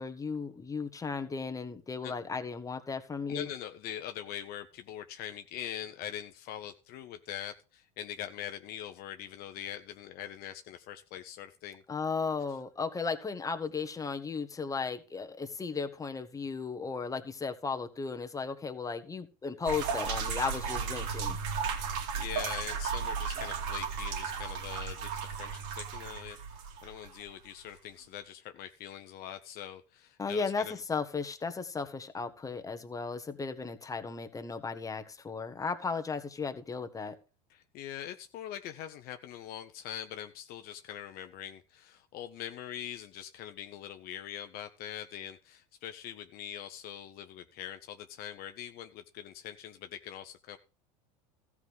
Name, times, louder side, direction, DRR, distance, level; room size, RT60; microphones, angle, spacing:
voice 1, 0.0-3.5 11.9-21.4 30.2-37.2, left 5 dB, 15° left, 6 dB, 1.5 m, -35 dB
voice 2, 3.3-11.8 22.1-30.7 37.5-50.6, left 10 dB, 50° left, 8 dB, 0.9 m, -43 dB
sound 1, 19.6-27.2, right 6 dB, 60° right, 2.7 m, -35 dB
14.0 x 4.9 x 7.3 m, 0.33 s
hypercardioid pair, 95°, 20 cm